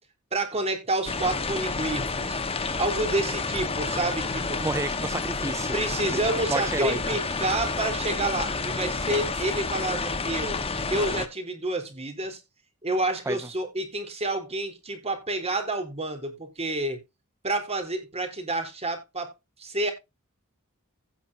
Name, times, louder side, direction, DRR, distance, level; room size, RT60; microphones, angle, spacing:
voice 1, 0.3-2.4 2.8-4.7 5.7-10.6 10.9-12.4 12.8-17.0 17.4-19.3 19.6-19.9, right 2 dB, 30° right, 3.8 m, -29 dB
sound 1, 1.1-11.3, left 4 dB, 25° left, 1.4 m, -30 dB
voice 2, 4.6-5.7 6.3-7.0 9.4-9.5 13.3-13.4, right 3 dB, 15° right, 0.4 m, -30 dB
17.0 x 5.8 x 2.8 m
head